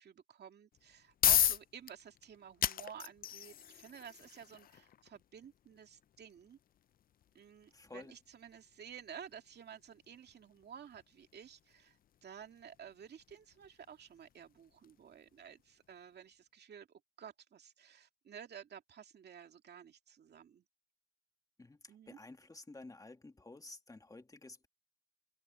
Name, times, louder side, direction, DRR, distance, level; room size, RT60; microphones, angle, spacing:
voice 1, 0.0-6.6 7.3-20.6 21.9-22.2, right 8 dB, 55° right, 2.4 m, -53 dB
sound 1, 0.7-15.6, left 10 dB, 45° left, 0.5 m, -39 dB
voice 2, 7.7-8.1 21.6-21.8 22.1-24.7, left 2 dB, 15° left, 2.0 m, -52 dB
cardioid pair, 90°, 20 cm